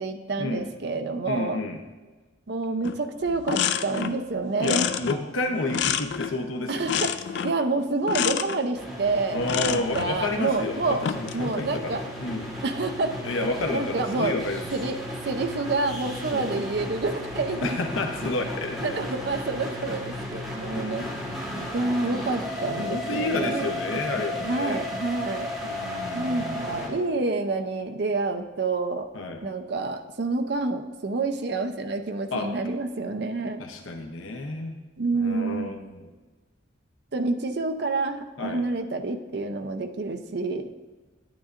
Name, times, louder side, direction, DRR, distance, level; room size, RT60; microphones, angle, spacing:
voice 1, 0.0-1.6 2.5-4.9 6.7-11.0 11.3-12.0 12.6-13.2 13.7-14.3 14.7-15.0 15.2-17.8 18.8-21.0 21.7-23.7 24.4-25.5 26.1-29.1 29.4-33.6 35.0-35.8 37.1-40.7, right 3 dB, 55° right, 7 dB, 0.6 m, -28 dB
voice 2, 1.3-1.8 4.6-7.1 9.3-12.5 13.2-14.7 16.3-16.5 17.6-19.0 20.7-21.7 22.7-24.8 25.6-27.0 29.1-29.4 32.3-32.5 33.6-34.8 35.1-36.0 38.4-38.6, left 2 dB, 85° left, 3 dB, 0.8 m, -31 dB
sound 1, 2.8-3.0 3.3-4.2 4.6-6.4 6.9-7.6 8.1-8.6 9.4-10.1 10.9-11.4, left 8 dB, 60° left, 0.3 m, -28 dB
sound 2, 8.7-26.9, left 1 dB, ahead, 1.3 m, -35 dB
10.5 x 9.0 x 2.5 m, 1.3 s
head